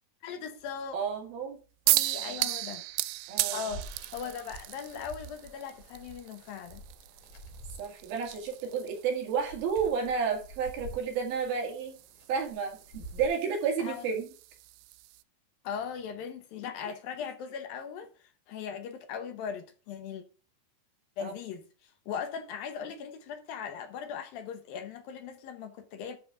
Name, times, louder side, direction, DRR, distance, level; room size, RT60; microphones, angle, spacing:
voice 1, 0.2-1.0 1.9-2.8 3.5-6.8 13.8-14.1 15.6-18.1 18.5-20.2 21.2-26.2, left 7 dB, 70° left, 2.5 m, -39 dB
voice 2, 0.9-1.6 2.2-2.4 3.3-3.7 7.8-12.0 12.3-14.3 21.2-21.3, right 6 dB, 65° right, 3.8 m, -31 dB
sound 1, 1.9-15.2, right 18 dB, 85° right, 2.6 m, -36 dB
sound 2, 3.7-13.3, right 1 dB, 50° left, 3.9 m, -49 dB
11.5 x 4.2 x 5.1 m
omnidirectional pair, 4.6 m